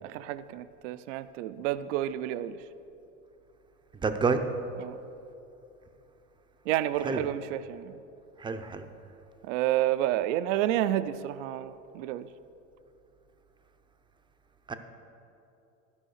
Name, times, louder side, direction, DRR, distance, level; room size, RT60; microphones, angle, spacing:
voice 1, 0.0-2.6 4.8-5.0 6.7-8.0 9.4-12.3, right 13 dB, 70° right, 13 dB, 0.5 m, -30 dB
voice 2, 3.9-4.4 7.0-7.2 8.4-8.9 14.7-14.8, right 4 dB, 10° right, 7 dB, 0.5 m, -28 dB
13.0 x 5.6 x 6.4 m, 2.8 s
supercardioid pair, 115°, 38 cm